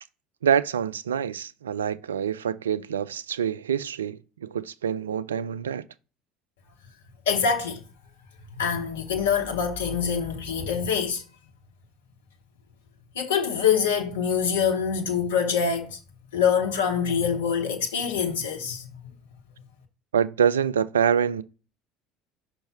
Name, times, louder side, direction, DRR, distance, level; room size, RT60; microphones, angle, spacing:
voice 1, 0.4-5.8 20.1-21.4, right 8 dB, 85° right, 0.3 m, -26 dB
voice 2, 7.3-7.8 8.6-11.2 13.1-16.0 16.3-18.9, left 7 dB, 75° left, 0.9 m, -25 dB
5.6 x 4.6 x 4.4 m
hypercardioid pair, 65°, 0 cm